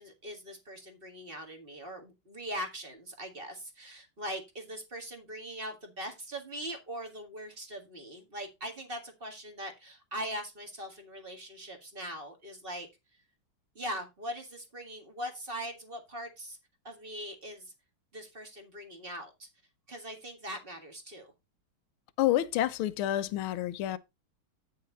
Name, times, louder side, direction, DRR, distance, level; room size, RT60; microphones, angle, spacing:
voice 1, 0.0-12.9 13.8-16.6 16.8-17.7 18.1-19.5 19.9-21.3, equal, 25° right, 1.9 m, -41 dB
voice 2, 22.2-24.0, left 13 dB, 80° left, 1.5 m, -28 dB
9.5 x 6.5 x 4.0 m
omnidirectional pair, 2.3 m